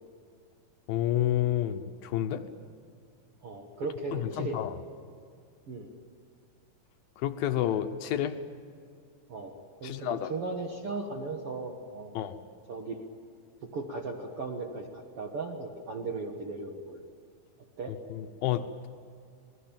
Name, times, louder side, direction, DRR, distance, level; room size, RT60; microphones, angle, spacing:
voice 1, 0.9-2.4 4.1-4.8 7.2-8.4 9.8-10.3 12.2-12.4 18.1-18.9, left 11 dB, 75° left, 8 dB, 2.5 m, -30 dB
voice 2, 3.4-4.6 5.7-5.9 9.3-9.5 9.8-12.1 12.7-13.1 13.7-17.0 17.8-17.9, right 3 dB, 55° right, 3 dB, 1.7 m, -37 dB
27.0 x 19.5 x 8.8 m, 2.3 s
omnidirectional pair, 4.5 m